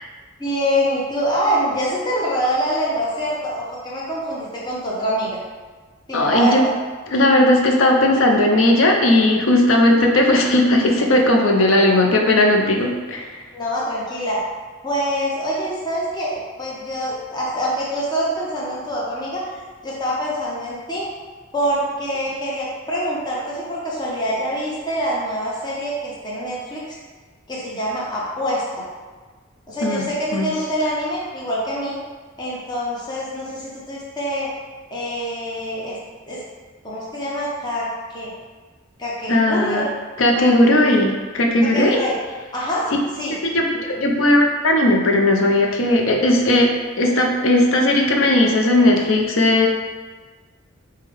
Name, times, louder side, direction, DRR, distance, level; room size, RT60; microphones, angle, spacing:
voice 1, 0.4-5.3 6.1-6.7 13.5-14.4 14.8-19.4 19.8-21.1 21.5-27.0 27.5-28.9 29.7-32.0 32.4-34.5 34.9-36.0 36.3-36.4 36.8-38.3 39.0-39.9 40.3-40.5 41.6-42.2 42.5-42.9 43.2-43.4, equal, 20° left, -6 dB, 0.7 m, -25 dB
voice 2, 6.1-6.6 7.1-13.3 29.8-30.0 30.3-30.5 39.3-39.8 40.2-42.0 43.4-49.7, left 1 dB, 75° left, 2 dB, 0.6 m, -17 dB
5.3 x 2.2 x 3.4 m, 1.4 s
head